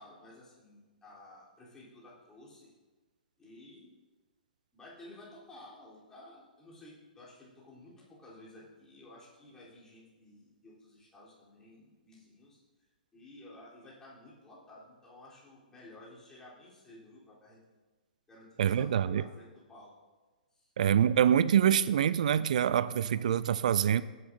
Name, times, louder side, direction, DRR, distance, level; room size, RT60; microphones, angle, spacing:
voice 1, 0.0-2.7 3.4-3.9 4.7-12.6 13.1-17.6 18.3-19.9 20.5-20.7, left 1 dB, 10° left, -6 dB, 3.2 m, -54 dB
voice 2, 18.6-19.2 20.8-24.0, right 9 dB, 55° right, 16 dB, 0.4 m, -25 dB
17.5 x 9.5 x 2.6 m, 1.2 s
figure-of-eight pair, 115°, 5 cm